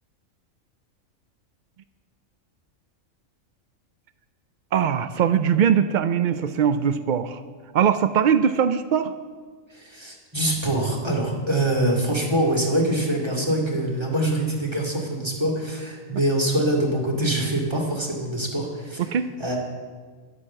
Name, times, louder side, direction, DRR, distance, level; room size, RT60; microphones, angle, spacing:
voice 1, 4.7-7.4 7.7-9.1 19.1-19.3, right 8 dB, 75° right, 11 dB, 0.4 m, -21 dB
voice 2, 9.7-19.1 19.4-19.6, right 1 dB, 20° right, -2 dB, 2.4 m, -24 dB
11.0 x 9.8 x 7.5 m, 1.5 s
omnidirectional pair, 1.4 m